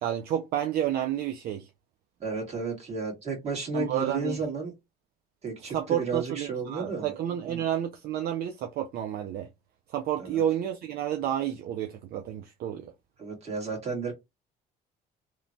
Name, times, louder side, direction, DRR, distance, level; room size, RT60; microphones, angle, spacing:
voice 1, 0.0-1.7 3.7-4.4 5.7-9.5 9.9-12.9, right 10 dB, 65° right, 0.4 m, -30 dB
voice 2, 2.2-4.7 5.4-7.1 7.5-7.6 10.2-10.4 13.2-14.1, right 4 dB, 40° right, 1.6 m, -32 dB
3.0 x 2.2 x 2.6 m
cardioid pair, 110°, 17 cm